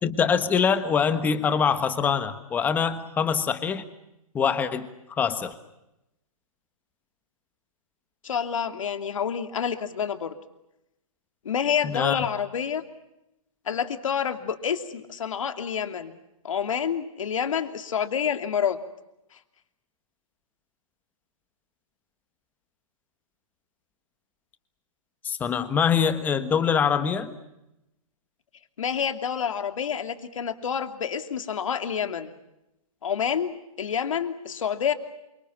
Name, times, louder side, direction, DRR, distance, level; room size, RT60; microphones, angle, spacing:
voice 1, 0.0-3.8 4.3-5.5 11.8-12.2 25.2-27.3, left 7 dB, 10° left, 11 dB, 1.4 m, -24 dB
voice 2, 8.2-10.3 11.4-12.8 13.7-16.1 16.4-18.8 28.8-32.3 33.0-34.9, left 7 dB, 60° left, 8 dB, 2.8 m, -28 dB
28.5 x 25.5 x 7.2 m, 0.88 s
hypercardioid pair, 160°, 19 cm